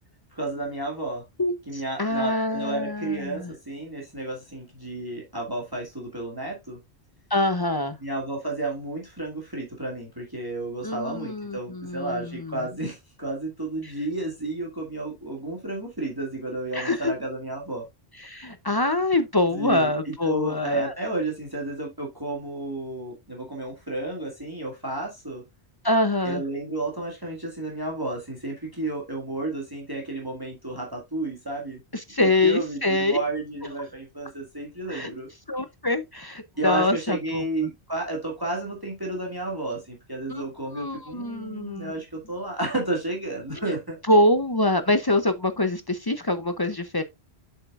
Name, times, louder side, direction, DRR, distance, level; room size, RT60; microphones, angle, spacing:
voice 1, 0.3-1.2 1.7-6.8 8.0-17.9 19.5-25.4 26.2-31.8 32.2-35.3 36.6-44.0, right 2 dB, 20° right, 2.0 m, -32 dB
voice 2, 1.4-3.5 7.3-8.0 10.8-12.6 13.8-13.9 16.7-17.1 18.2-20.9 25.8-26.4 31.9-33.2 34.9-35.1 35.5-37.4 40.3-40.4 40.7-41.9 44.1-47.0, left 1 dB, 30° left, 0.5 m, -25 dB
7.8 x 6.5 x 2.4 m
omnidirectional pair, 1.1 m